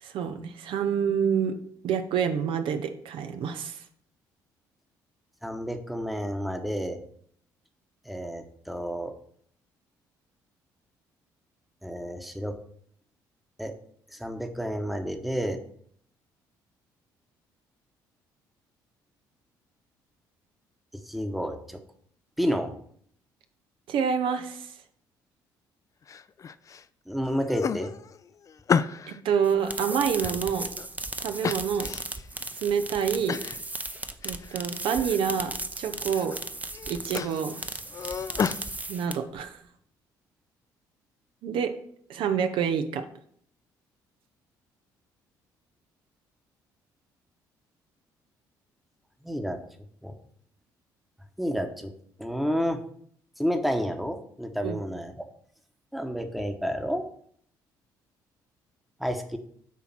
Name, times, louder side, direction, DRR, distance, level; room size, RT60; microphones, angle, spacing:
voice 1, 0.0-1.6 1.8-3.8 23.9-24.7 29.1-30.7 31.2-31.9 32.6-33.4 34.2-36.3 36.9-37.5 38.9-39.6 41.4-41.7 42.1-43.0 54.6-54.8, right 7 dB, 65° right, 8 dB, 0.6 m, -27 dB
voice 2, 5.4-7.0 8.1-9.1 11.8-12.6 13.6-13.7 14.1-15.6 21.1-21.8 22.4-22.7 27.1-27.9 49.2-49.6 50.0-50.2 51.4-51.9 52.2-52.8 53.4-55.1 55.9-57.0 59.0-59.4, equal, ahead, 6 dB, 1.0 m, -30 dB
sound 1, 26.1-26.8 27.2-29.2 29.7-30.9 31.4-32.3 32.7-32.8 33.3-33.6 34.0-34.6 34.9-35.5 35.9-36.4 36.7-38.6, left 6 dB, 35° left, 0.4 m, -32 dB
sound 2, 29.4-39.4, right 2 dB, 15° right, 0.7 m, -36 dB
8.2 x 2.8 x 5.9 m, 0.63 s
hypercardioid pair, 60°, 9 cm